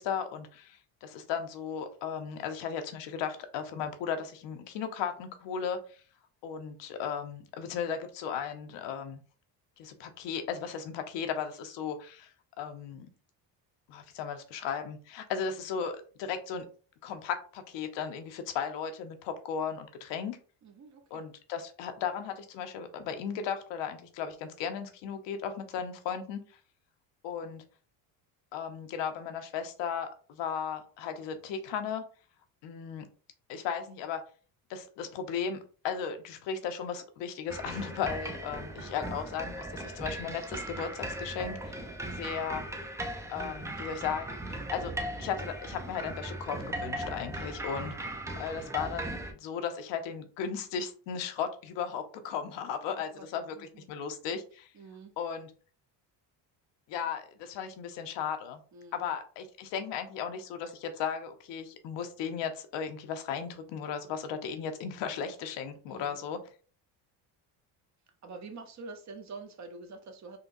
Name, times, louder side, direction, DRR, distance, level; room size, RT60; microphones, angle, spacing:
voice 1, 0.0-6.0 6.4-9.2 9.8-12.3 12.6-13.1 13.9-16.6 17.0-20.4 21.1-26.4 27.2-27.6 28.5-32.0 32.6-33.1 33.5-34.2 34.7-41.8 42.1-42.7 43.3-44.9 45.2-48.1 48.4-54.7 55.2-55.5 56.9-58.6 58.9-66.4, left 7 dB, 75° left, 7 dB, 0.7 m, -36 dB
voice 2, 20.6-21.2 52.9-53.3 53.5-53.9 54.7-55.2 58.7-59.0 65.9-66.2 68.2-70.4, right 3 dB, 40° right, 5 dB, 0.7 m, -46 dB
sound 1, 37.5-49.3, right 1 dB, 10° right, 0.3 m, -38 dB
3.8 x 2.2 x 2.5 m, 0.39 s
cardioid pair, 105°, 44 cm